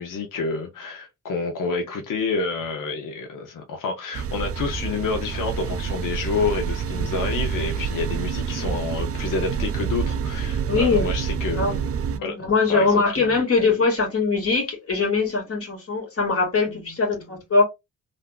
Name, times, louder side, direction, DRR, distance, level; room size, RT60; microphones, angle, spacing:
voice 1, 0.0-11.9 12.2-13.0, left 4 dB, 90° left, 0.8 m, -28 dB
sound 1, 4.1-12.2, right 7 dB, 50° right, 0.4 m, -27 dB
voice 2, 10.7-11.1 11.6-11.8 12.1-17.6, left 4 dB, 45° left, 1.9 m, -22 dB
3.5 x 2.6 x 2.4 m
cardioid pair, 95°, 31 cm